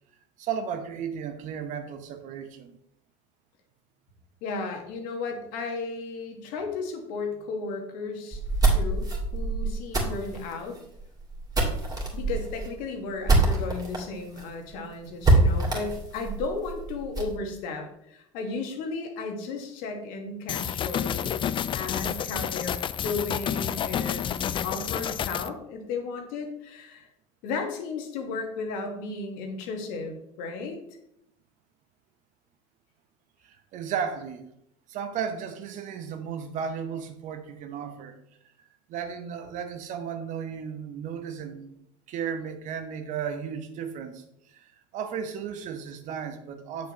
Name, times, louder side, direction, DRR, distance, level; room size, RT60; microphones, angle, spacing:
voice 1, 0.4-2.8 33.4-34.5 34.9-38.2 38.9-41.7 42.1-46.9, right 7 dB, 50° right, 8 dB, 1.0 m, -34 dB
voice 2, 4.4-8.4 8.7-10.8 12.1-21.3 21.7-24.3 24.6-27.1 27.4-30.8, left 4 dB, 60° left, 3 dB, 1.6 m, -34 dB
sound 1, 8.3-14.0 14.4-14.5 14.7-14.8 15.2-17.4, right 2 dB, 25° right, 2.5 m, -25 dB
sound 2, 20.5-25.5, left 9 dB, 30° left, 0.4 m, -30 dB
7.8 x 6.5 x 3.1 m, 0.76 s
hypercardioid pair, 70°, 16 cm